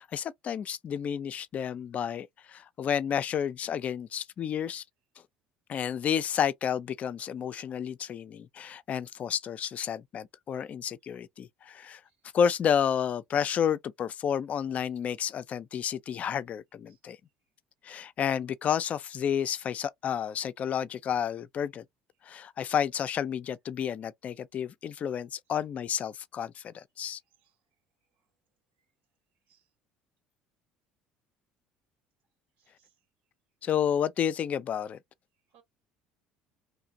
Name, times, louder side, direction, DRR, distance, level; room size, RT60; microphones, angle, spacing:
voice 1, 0.0-4.8 5.7-12.0 12.3-17.2 17.8-21.8 22.3-27.2 33.6-35.0, left 8 dB, 45° left, 0.4 m, -31 dB
voice 2, 32.6-32.9 35.5-35.6, right 9 dB, 80° right, 1.2 m, -66 dB
3.2 x 2.5 x 2.8 m
supercardioid pair, 80°, 3 cm